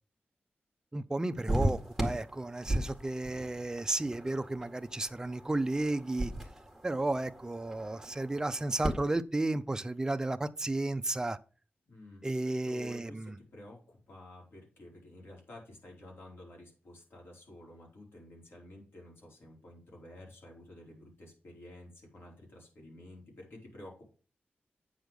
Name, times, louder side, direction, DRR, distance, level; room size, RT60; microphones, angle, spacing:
voice 1, 0.9-6.3 6.8-11.4 12.2-13.4, right 2 dB, 15° right, 0.5 m, -33 dB
sound 1, 1.5-8.9, right 1 dB, ahead, 1.8 m, -37 dB
voice 2, 11.9-24.0, left 1 dB, 75° left, 4.7 m, -51 dB
9.0 x 6.3 x 5.2 m
wide cardioid pair, 175°, 4 cm